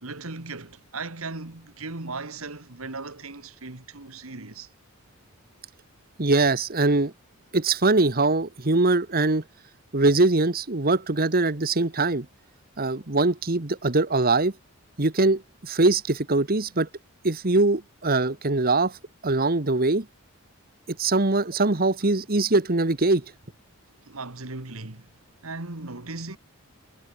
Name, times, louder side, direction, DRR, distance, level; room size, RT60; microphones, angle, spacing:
voice 1, 0.0-4.7 24.0-25.1 25.4-26.4, right 3 dB, 70° right, 2.1 m, -37 dB
voice 2, 6.2-7.1 7.5-9.4 9.9-12.3 12.8-14.5 15.0-16.9 17.2-19.0 19.2-20.1 20.9-23.2, right 2 dB, 45° right, 1.5 m, -22 dB
head